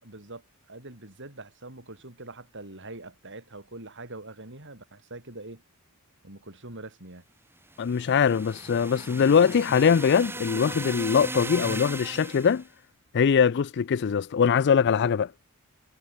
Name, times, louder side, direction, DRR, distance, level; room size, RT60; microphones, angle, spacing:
voice 1, 0.0-0.4 0.7-5.6 6.2-7.2, right 2 dB, 55° right, 5.8 m, -43 dB
sound 1, 7.7-12.6, right 2 dB, 10° right, 3.7 m, -37 dB
voice 2, 7.8-12.6 13.1-15.3, left 6 dB, 50° left, 0.4 m, -22 dB
head